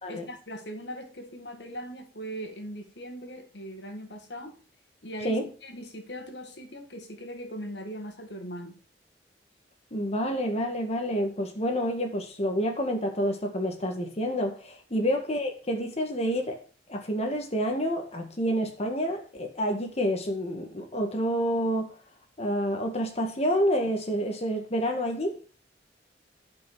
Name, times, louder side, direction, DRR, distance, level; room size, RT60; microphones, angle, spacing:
voice 1, 0.1-4.6 5.0-8.8, equal, 70° left, 2.2 m, -40 dB
voice 2, 9.9-16.6 16.9-21.9 22.4-25.3, equal, 35° left, 1.8 m, -28 dB
12.0 x 5.9 x 6.2 m
head